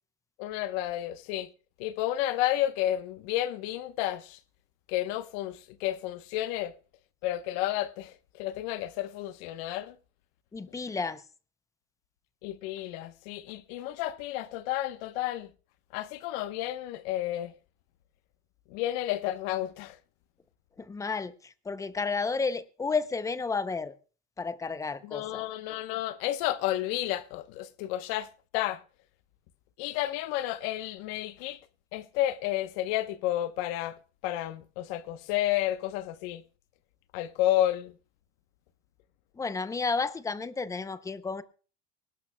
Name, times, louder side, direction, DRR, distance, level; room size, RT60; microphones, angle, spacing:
voice 1, 0.4-1.5 1.8-4.4 4.9-6.7 7.2-10.0 12.4-15.5 15.9-17.5 18.7-20.0 25.0-28.8 29.8-31.6 31.9-36.4 37.1-37.9, left 13 dB, 75° left, 1.0 m, -31 dB
voice 2, 10.5-11.2 20.8-23.9 24.4-25.4 39.3-41.4, left 4 dB, 10° left, 0.5 m, -32 dB
24.5 x 12.0 x 2.2 m
cardioid pair, 150°, 31 cm